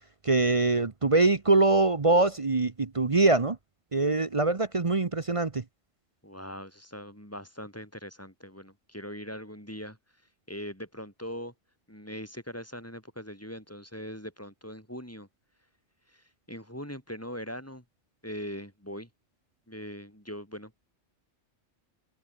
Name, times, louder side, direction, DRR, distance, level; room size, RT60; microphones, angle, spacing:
voice 1, 0.2-3.6 3.9-5.6, right 3 dB, 30° right, 0.9 m, -23 dB
voice 2, 6.2-10.0 10.5-11.5 11.9-15.3 16.1-17.8 18.2-19.1 19.7-20.9, equal, 10° left, 7.5 m, -41 dB
omnidirectional pair, 1.2 m